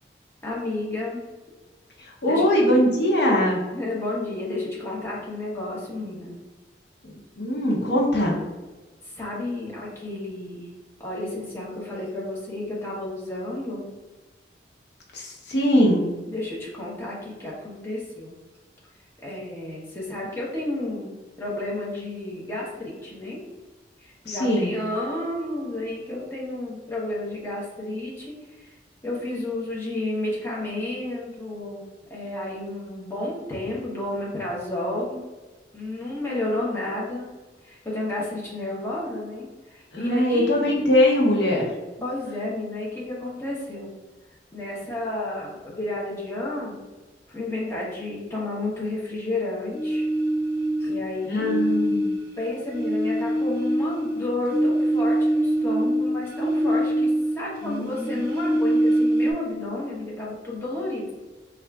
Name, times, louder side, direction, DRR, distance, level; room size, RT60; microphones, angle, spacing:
voice 1, 0.4-1.2 2.2-2.5 3.7-6.4 9.0-10.7 11.0-13.9 16.3-18.4 19.2-23.4 24.0-28.8 29.0-31.8 32.1-35.2 35.7-37.3 37.6-40.7 42.0-43.9 44.5-46.8 47.3-50.1 50.8-51.5 52.4-61.1, left 2 dB, 15° left, -6 dB, 0.8 m, -31 dB
voice 2, 2.2-3.6 7.4-8.4 15.1-16.1 24.3-24.7 39.9-41.7 51.3-52.1 57.6-58.2, left 1 dB, 65° left, -2 dB, 0.8 m, -21 dB
sound 1, 24.9-26.2, right 2 dB, 15° right, 0.8 m, -43 dB
sound 2, 49.7-51.0 51.3-57.5 57.7-59.3, right 1 dB, 50° right, 0.6 m, -24 dB
4.3 x 2.4 x 3.4 m, 1.3 s
head